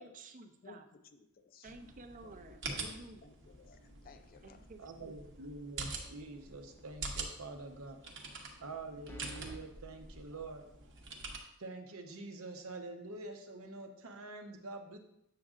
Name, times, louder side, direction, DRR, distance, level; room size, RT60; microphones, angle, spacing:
voice 1, 0.0-0.8 1.6-3.3 4.4-5.1, right 3 dB, 40° right, 7 dB, 0.5 m, -52 dB
voice 2, 0.6-1.7 2.2-2.8 3.2-4.7, left 4 dB, 45° left, 9 dB, 0.4 m, -58 dB
sound 1, 1.6-11.4, right 3 dB, 60° right, 0.9 m, -46 dB
voice 3, 4.8-8.0 8.6-10.6 11.6-15.0, right 2 dB, 85° right, 4 dB, 0.8 m, -46 dB
sound 2, 6.1-6.4 6.8-6.9 9.1-9.6, right 1 dB, 10° left, 0.7 m, -48 dB
7.4 x 6.3 x 2.4 m, 0.80 s
head